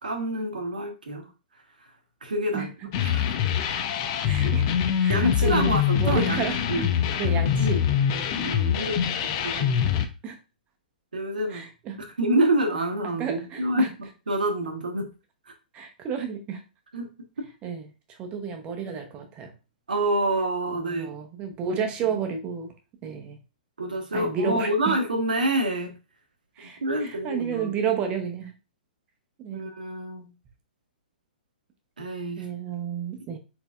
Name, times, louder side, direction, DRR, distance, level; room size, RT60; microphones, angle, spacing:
voice 1, 0.0-1.3 2.2-2.7 3.0-3.3 5.1-6.9 7.2-7.8 8.1-9.1 9.4-9.8 11.1-11.6 12.2-15.1 16.9-17.1 17.4-17.5 19.9-21.1 21.8-22.2 23.8-25.9 26.6-27.7 29.5-30.3 32.0-32.5, right 1 dB, 65° right, 3 dB, 1.1 m, -27 dB
sound 1, 2.9-10.1, left 9 dB, 35° left, 0.5 m, -24 dB
voice 2, 4.2-4.6 5.0-6.9 7.2-7.8 10.2-10.4 11.5-12.0 13.2-13.9 15.7-16.6 17.6-17.9 18.2-19.5 20.7-22.7 23.0-23.4 24.1-24.9 26.6-28.5 29.4-29.6 32.4-33.4, right 7 dB, 25° right, 5 dB, 0.9 m, -31 dB
4.2 x 3.8 x 2.4 m, 0.30 s
figure-of-eight pair, 115°, 5 cm